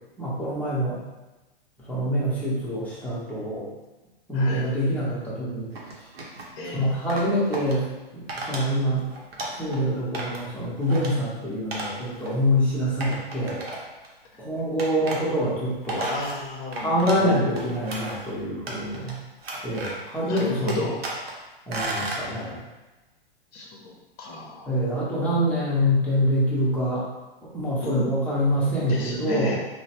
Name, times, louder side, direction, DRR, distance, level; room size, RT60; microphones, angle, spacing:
voice 1, 0.2-1.0 1.9-3.7 4.3-5.7 6.7-7.8 8.1-9.0 9.5-13.6 14.4-16.0 16.8-19.2 19.6-20.7 21.7-22.6 24.7-27.0 27.5-29.6, equal, 5° left, -9 dB, 0.8 m, -25 dB
voice 2, 4.3-4.7 6.6-6.9 14.3-14.4 16.0-17.7 20.2-20.9 23.5-23.9 24.2-24.8 27.8-28.1 28.9-29.6, left 2 dB, 40° left, -2 dB, 0.7 m, -33 dB
sound 1, 5.7-6.5 7.1-7.7 8.3-8.7 9.0-9.8 10.1-10.5 10.8-11.1 11.7-11.9 12.2-12.3 13.0-14.1 14.8-15.2 15.6-17.2 17.5-18.2 18.7-19.1 19.4-20.1 20.4-21.3 21.7-22.2, right 2 dB, 75° right, 0.8 m, -34 dB
3.0 x 2.1 x 2.8 m, 1.1 s
hypercardioid pair, 115°, 30 cm